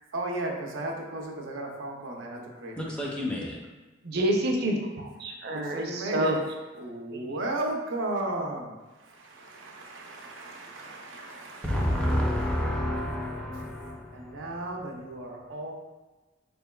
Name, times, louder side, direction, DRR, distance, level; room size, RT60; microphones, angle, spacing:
voice 1, 0.1-2.9 5.5-6.3 6.8-12.6 14.1-15.7, right 2 dB, 90° right, 0 dB, 0.7 m, -35 dB
voice 2, 2.8-3.6 11.6-14.6, equal, 5° left, -2 dB, 0.4 m, -29 dB
voice 3, 4.0-6.4 7.2-7.4, right 1 dB, 55° right, 2 dB, 0.5 m, -28 dB
4.5 x 3.4 x 2.2 m, 1.2 s
head